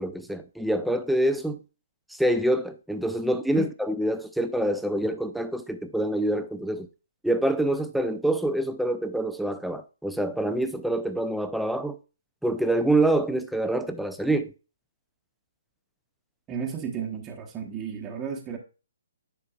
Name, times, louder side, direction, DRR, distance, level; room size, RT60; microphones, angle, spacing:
voice 1, 0.0-1.6 2.1-6.9 7.2-12.0 12.4-14.5, right 1 dB, ahead, 0.4 m, -26 dB
voice 2, 16.5-18.6, right 6 dB, 15° right, 1.1 m, -33 dB
9.7 x 4.6 x 2.4 m
hypercardioid pair, 155°, 0 cm